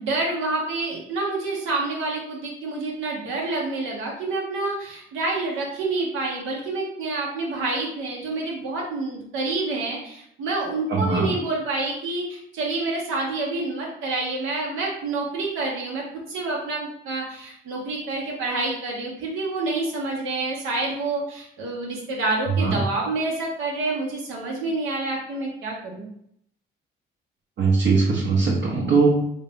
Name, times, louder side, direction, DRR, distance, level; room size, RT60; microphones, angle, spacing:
voice 1, 0.0-16.0 16.3-26.1, right 2 dB, 90° right, -3 dB, 1.1 m, -28 dB
voice 2, 10.9-11.3 22.6-22.7 27.6-29.1, right 4 dB, 65° right, -5 dB, 0.9 m, -20 dB
3.2 x 2.8 x 3.5 m, 0.70 s
cardioid pair, 90°, 20 cm